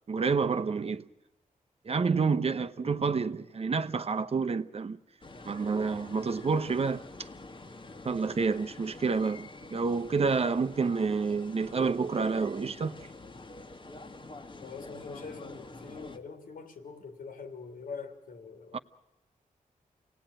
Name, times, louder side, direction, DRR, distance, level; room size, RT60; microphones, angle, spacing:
voice 1, 0.1-1.1 1.8-5.0 5.5-7.3 8.0-13.1 18.7-18.8, right 5 dB, 45° right, 0.8 m, -29 dB
sound 1, 5.2-16.2, left 2 dB, 35° left, 1.5 m, -47 dB
voice 2, 14.6-18.8, left 5 dB, 90° left, 3.3 m, -44 dB
27.5 x 18.5 x 9.0 m
wide cardioid pair, 95°, 14 cm